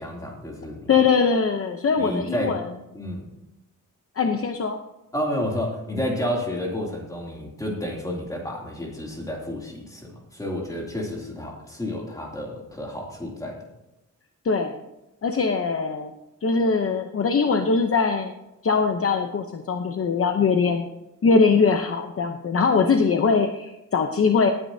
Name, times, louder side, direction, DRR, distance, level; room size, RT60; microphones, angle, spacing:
voice 1, 0.0-0.9 2.0-2.6 2.9-3.2 5.1-13.7, left 1 dB, 10° left, -1 dB, 2.8 m, -30 dB
voice 2, 0.9-2.6 4.2-4.8 14.4-14.8 15.2-16.1 16.4-18.3 18.6-20.9 21.2-24.5, left 5 dB, 45° left, 5 dB, 0.8 m, -21 dB
18.5 x 9.7 x 2.8 m, 0.92 s
wide cardioid pair, 175°, 32 cm